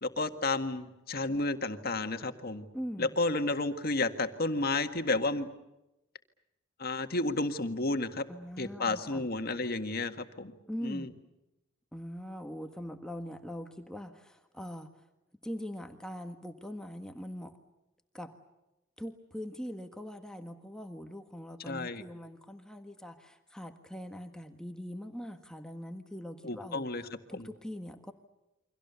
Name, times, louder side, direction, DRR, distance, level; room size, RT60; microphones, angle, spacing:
voice 1, 0.0-2.7 3.0-5.5 6.8-8.3 8.6-10.5 10.8-11.1 21.7-22.0 26.4-27.0 27.4-27.5, left 2 dB, 50° left, 8 dB, 1.9 m, -31 dB
voice 2, 2.7-3.2 8.3-9.3 10.7-11.1 11.9-15.0 15.4-17.6 18.1-18.3 19.0-26.9 27.3-28.1, equal, 5° left, 5 dB, 1.5 m, -42 dB
29.5 x 24.5 x 7.0 m, 0.95 s
head